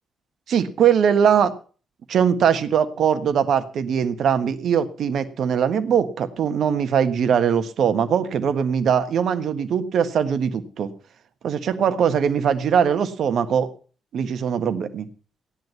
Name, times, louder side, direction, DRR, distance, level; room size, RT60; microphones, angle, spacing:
voice 1, 0.5-1.5 2.1-10.9 11.4-13.7 14.1-15.1, right 7 dB, 65° right, 11 dB, 1.4 m, -21 dB
16.0 x 10.5 x 5.6 m, 0.39 s
hypercardioid pair, 40°, 0 cm